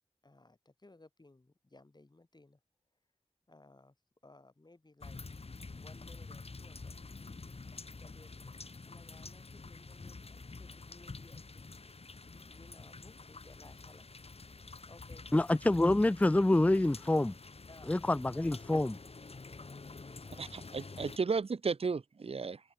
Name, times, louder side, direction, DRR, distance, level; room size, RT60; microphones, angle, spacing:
voice 1, 0.2-2.6 3.5-4.0 4.2-5.2 5.8-7.0 8.0-11.7 12.5-14.1 14.9-15.3 17.7-18.1 19.5-20.5, left 2 dB, 35° left, 6.1 m, -60 dB
sound 1, 5.0-21.2, left 3 dB, 55° left, 2.2 m, -48 dB
voice 2, 15.3-17.3 17.9-19.0, left 1 dB, 10° left, 0.4 m, -27 dB
voice 3, 20.4-22.6, right 5 dB, 55° right, 0.7 m, -34 dB
open air
wide cardioid pair, 65°, 12 cm